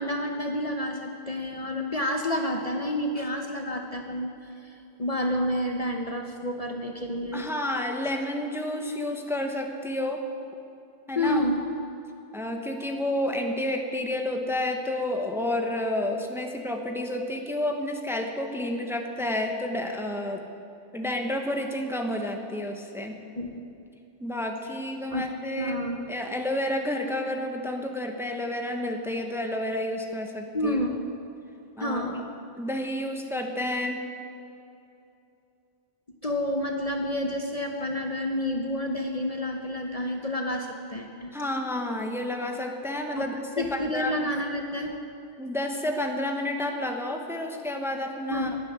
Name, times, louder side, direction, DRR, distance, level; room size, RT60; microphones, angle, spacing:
voice 1, 0.0-7.4 11.1-11.6 23.4-23.6 25.1-25.3 25.6-26.1 30.5-31.0 31.8-32.2 36.2-41.3 43.2-43.3 43.6-44.9 48.3-48.6, left 1 dB, 35° left, 3 dB, 1.0 m, -29 dB
voice 2, 7.3-10.2 11.1-11.4 12.3-20.4 20.9-23.2 24.2-25.8 26.1-30.8 31.8-32.0 32.6-34.0 41.3-44.3 45.4-48.5, left 1 dB, ahead, 3 dB, 1.1 m, -30 dB
12.0 x 11.5 x 9.5 m, 2.7 s
omnidirectional pair, 1.2 m